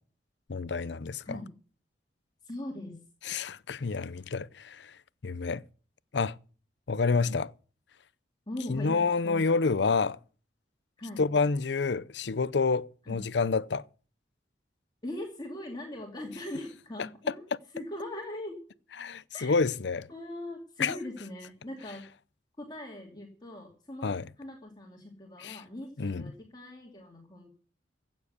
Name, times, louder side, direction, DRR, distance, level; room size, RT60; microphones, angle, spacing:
voice 1, 0.5-1.4 3.2-5.6 6.1-6.4 6.9-7.5 8.7-10.2 11.2-13.8 17.3-17.4 19.0-20.1 20.8-21.0 24.0-24.3 25.4-25.6 26.0-26.3, left 4 dB, 75° left, 0.6 m, -28 dB
voice 2, 2.4-3.0 8.5-9.5 11.0-11.2 13.1-13.2 15.0-18.6 19.3-19.6 20.1-22.1 22.6-27.5, left 1 dB, 25° left, 2.5 m, -41 dB
16.0 x 7.5 x 8.2 m
head